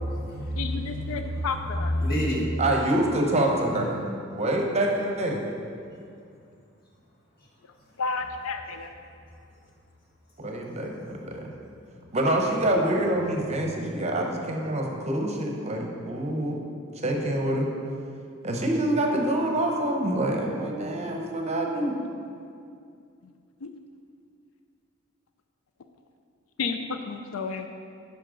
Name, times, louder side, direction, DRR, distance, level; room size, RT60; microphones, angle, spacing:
voice 1, 0.0-2.6 12.0-12.1 13.6-13.8, equal, 50° left, -4 dB, 1.7 m, -29 dB
voice 2, 0.5-1.9 8.0-8.9 23.6-23.8 26.6-27.7, left 4 dB, 85° left, 7 dB, 0.4 m, -31 dB
voice 3, 2.6-4.1 4.3-5.4 10.4-11.4 12.1-16.6 17.0-17.7 18.4-22.0, right 1 dB, 35° right, 1 dB, 0.8 m, -26 dB
10.0 x 5.3 x 3.8 m, 2.4 s
head